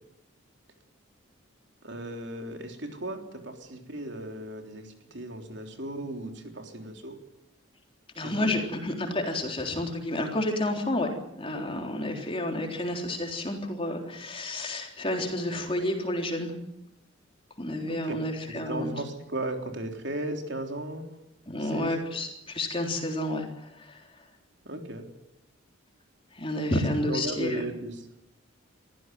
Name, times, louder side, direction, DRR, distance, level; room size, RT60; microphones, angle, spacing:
voice 1, 1.8-7.2 8.2-8.5 17.9-18.1 18.5-21.1 21.6-22.0 24.6-25.1 27.1-28.1, right 1 dB, 55° right, 4 dB, 3.6 m, -36 dB
voice 2, 8.2-16.5 17.6-18.9 21.5-24.0 26.3-27.6, left 1 dB, 25° left, 2 dB, 3.7 m, -30 dB
24.5 x 15.5 x 9.4 m, 0.83 s
head